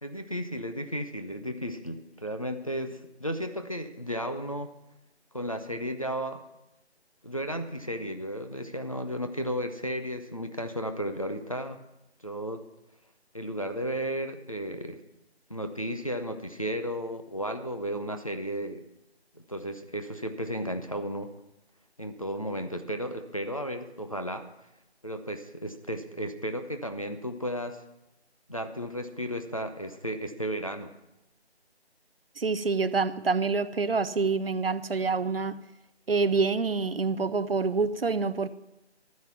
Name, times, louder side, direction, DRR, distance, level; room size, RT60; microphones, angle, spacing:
voice 1, 0.0-4.7 5.3-6.4 7.2-11.8 12.2-12.7 13.3-15.0 15.5-18.8 19.3-21.3 22.0-24.5 25.0-27.8 28.5-30.9, equal, 30° left, 0.6 m, -34 dB
voice 2, 32.4-35.6 36.1-38.5, right 4 dB, 60° right, 0.6 m, -27 dB
12.5 x 9.5 x 5.9 m
figure-of-eight pair, 170°, 33 cm